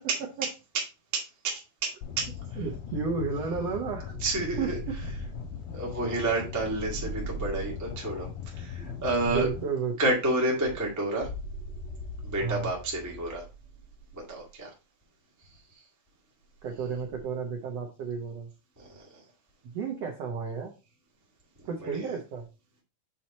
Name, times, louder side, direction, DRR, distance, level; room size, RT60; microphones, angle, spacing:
voice 1, 1.1-2.6 4.2-4.8 5.7-9.5 10.0-11.3 12.2-13.4 14.1-14.7 15.5-15.6 18.8-19.2 21.8-22.2, right 2 dB, 20° right, -2 dB, 0.4 m, -30 dB
sound 1, 2.0-9.6, left 8 dB, 90° left, 2.7 m, -39 dB
voice 2, 2.6-4.1 4.6-4.7 9.3-9.9 12.4-12.7 16.6-18.5 19.6-20.7 21.6-22.4, right 5 dB, 75° right, 1 dB, 1.4 m, -32 dB
sound 2, 4.1-8.3 8.8-9.6 10.3-14.5 16.7-17.2, right 2 dB, 35° left, 2.4 m, -41 dB
6.3 x 4.5 x 4.1 m, 0.30 s
omnidirectional pair, 4.2 m